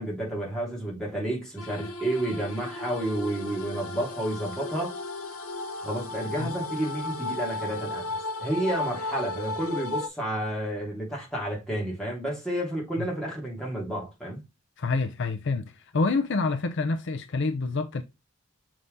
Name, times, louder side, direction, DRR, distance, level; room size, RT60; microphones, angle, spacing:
voice 1, 0.0-4.9 5.8-8.1 8.4-14.4, right 1 dB, 5° left, 2.8 m, -31 dB
sound 1, 1.6-10.1, left 2 dB, 80° left, 1.3 m, -35 dB
voice 2, 14.8-18.0, left 3 dB, 55° left, 0.6 m, -27 dB
6.6 x 3.7 x 3.9 m
head